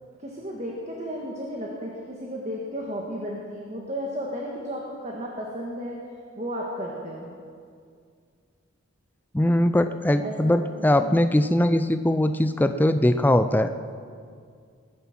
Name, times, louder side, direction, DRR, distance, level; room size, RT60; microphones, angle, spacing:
voice 1, 0.2-6.0 6.4-7.3 10.2-11.3, equal, 35° right, -2 dB, 1.6 m, -34 dB
voice 2, 9.3-13.7, left 1 dB, 10° left, 9 dB, 0.4 m, -21 dB
19.5 x 9.6 x 6.0 m, 2.2 s
head